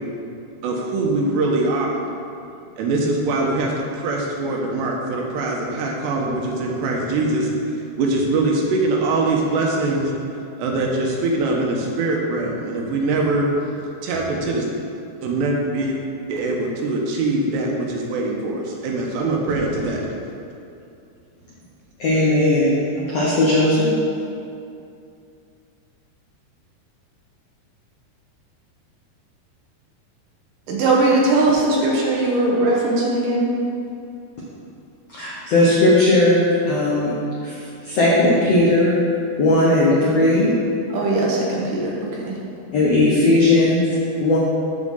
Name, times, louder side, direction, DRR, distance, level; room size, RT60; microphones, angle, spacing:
voice 1, 0.6-1.9 2.8-3.7 4.0-7.5 8.0-10.1 10.6-13.4 14.0-14.6 15.2-16.0 16.3-18.6 18.8-20.0, right 2 dB, 85° right, -1 dB, 3.2 m, -22 dB
voice 2, 22.0-23.9 35.1-37.1 37.4-39.0 39.4-40.5 42.7-43.8 44.2-44.4, left 2 dB, 85° left, -6 dB, 1.4 m, -17 dB
voice 3, 30.7-33.5 40.9-42.4, right 2 dB, 65° right, -4 dB, 2.4 m, -19 dB
13.5 x 5.2 x 3.7 m, 2.6 s
omnidirectional pair, 4.7 m